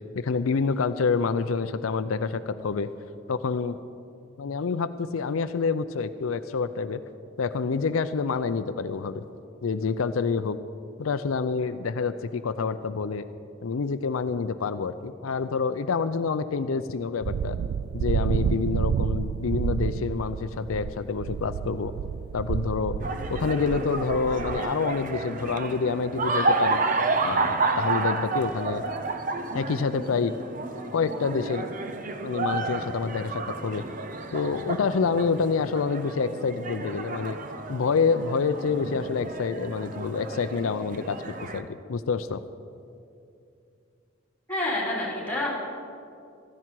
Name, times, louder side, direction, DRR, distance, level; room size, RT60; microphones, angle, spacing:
voice 1, 0.1-2.9 3.3-3.8 4.4-7.0 7.4-9.2 9.6-10.6 11.0-13.3 13.6-17.6 17.9-21.9 22.3-23.0 23.3-26.8 27.2-28.8 29.5-30.3 30.9-31.7 32.2-33.8 34.3-37.4 37.7-41.2 41.5-42.4, left 5 dB, 90° left, 11 dB, 0.5 m, -27 dB
sound 1, 17.2-24.6, right 7 dB, 90° right, 0.3 m, -29 dB
sound 2, 23.0-41.6, right 3 dB, 40° right, 0.7 m, -31 dB
voice 2, 44.5-45.5, left 1 dB, 10° left, -5 dB, 3.7 m, -28 dB
16.0 x 13.5 x 4.7 m, 2.5 s
head